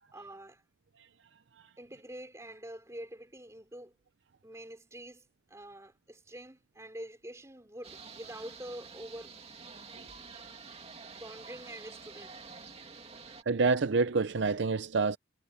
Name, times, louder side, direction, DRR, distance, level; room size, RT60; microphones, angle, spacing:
voice 1, 0.1-0.6 1.8-4.0 4.4-9.4 11.2-12.3, right 1 dB, 15° right, 3.8 m, -46 dB
sound 1, 7.8-13.4, right 5 dB, 30° right, 2.4 m, -49 dB
voice 2, 13.5-15.2, right 4 dB, 65° right, 0.6 m, -27 dB
head